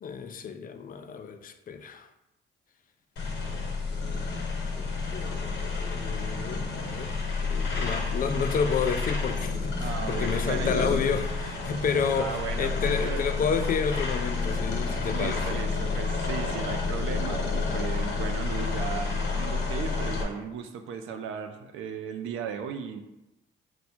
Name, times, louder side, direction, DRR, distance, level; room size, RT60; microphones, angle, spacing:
voice 1, 0.0-2.1 4.8-7.1 7.5-15.6, left 6 dB, 45° left, 0.4 m, -30 dB
sound 1, 3.2-20.2, left 4 dB, 65° left, 1.0 m, -30 dB
voice 2, 9.8-11.0 12.2-13.3 15.1-23.0, right 7 dB, 85° right, 0.5 m, -36 dB
4.3 x 2.2 x 4.3 m
cardioid pair, 90°, 20 cm